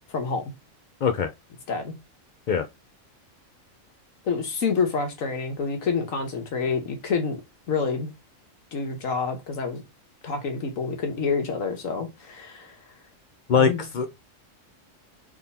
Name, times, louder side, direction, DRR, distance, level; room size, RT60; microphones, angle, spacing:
voice 1, 0.1-0.5 1.7-1.9 4.2-7.4 7.7-8.1 8.7-9.8 10.2-12.8 13.6-13.8, left 5 dB, 75° left, 1.6 m, -28 dB
voice 2, 13.5-14.1, left 6 dB, 60° left, 0.5 m, -22 dB
3.6 x 3.5 x 4.1 m
omnidirectional pair, 1.4 m